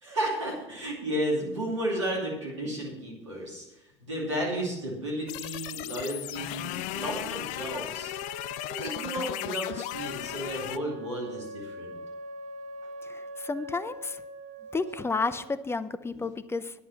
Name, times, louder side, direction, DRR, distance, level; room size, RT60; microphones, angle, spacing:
voice 1, 0.0-3.6 4.0-8.1 8.7-11.9 16.1-16.2, right 1 dB, 90° right, -3 dB, 2.5 m, -33 dB
sound 1, 5.3-10.8, left 18 dB, 55° left, 0.4 m, -36 dB
Wind instrument woodwind instrument, 7.9-15.7, right 1 dB, 55° right, 1.2 m, -43 dB
voice 2, 13.1-14.2 14.7-16.7, left 4 dB, 15° left, 14 dB, 0.8 m, -31 dB
10.0 x 8.4 x 5.7 m, 0.89 s
hypercardioid pair, 65°, 15 cm